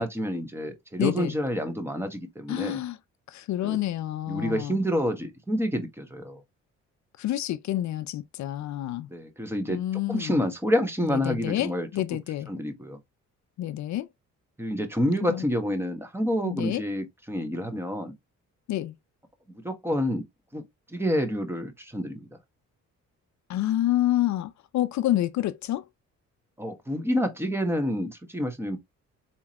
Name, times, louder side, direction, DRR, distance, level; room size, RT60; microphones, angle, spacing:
voice 1, 0.0-2.8 3.6-3.8 4.3-6.4 9.1-9.8 10.1-11.9 12.5-13.0 14.6-18.1 19.6-20.2 20.5-20.6 20.9-22.3 26.6-28.8, equal, 10° right, 1.4 m, -28 dB
voice 2, 1.0-1.3 2.5-3.0 3.3-4.8 7.2-9.1 9.7-10.4 11.0-12.5 13.6-14.1 15.3-15.4 16.4-16.8 18.7-18.9 23.5-25.9, left 13 dB, 65° left, 0.5 m, -28 dB
4.4 x 3.5 x 3.0 m
cardioid pair, 90°, 30 cm